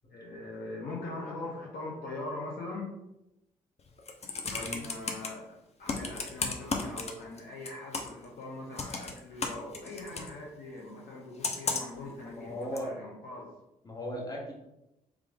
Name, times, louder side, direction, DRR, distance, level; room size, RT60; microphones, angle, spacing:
voice 1, 0.1-2.9 4.5-13.5, left 2 dB, 55° left, -4 dB, 1.0 m, -41 dB
Computer keyboard, 3.9-5.3 5.9-7.4 7.6-8.2 8.8-10.3 11.4-12.0 12.8-12.9, left 4 dB, 35° left, 0.7 m, -34 dB
voice 2, 4.4-4.8 12.0-12.9 13.8-14.5, equal, 20° left, -2 dB, 1.4 m, -38 dB
3.4 x 3.3 x 3.6 m, 0.90 s
hypercardioid pair, 45°, 18 cm